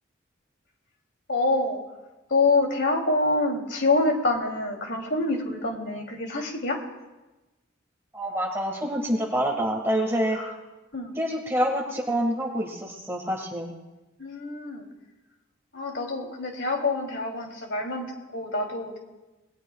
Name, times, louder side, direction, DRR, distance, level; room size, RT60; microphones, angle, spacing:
voice 1, 1.3-1.8 2.3-6.8 10.3-10.6 10.9-11.2 14.2-14.9 15.7-19.0, left 2 dB, 60° left, 1 dB, 2.9 m, -26 dB
voice 2, 8.1-10.4 11.2-13.7, equal, 10° right, 0 dB, 1.8 m, -27 dB
28.0 x 20.0 x 2.3 m, 1.1 s
head